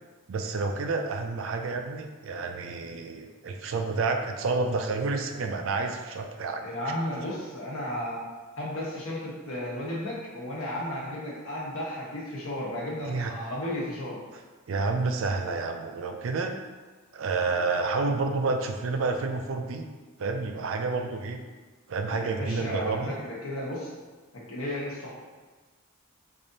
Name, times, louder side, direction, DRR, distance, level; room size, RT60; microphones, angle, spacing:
voice 1, 0.3-6.6 13.0-13.3 14.7-16.6 17.1-19.8 20.2-21.4 21.9-23.2, right 3 dB, 65° right, 5 dB, 0.4 m, -29 dB
voice 2, 6.6-8.2 8.6-14.2 22.1-23.9 24.3-25.1, left 1 dB, 85° left, -5 dB, 1.0 m, -34 dB
3.3 x 2.5 x 3.9 m, 1.3 s
head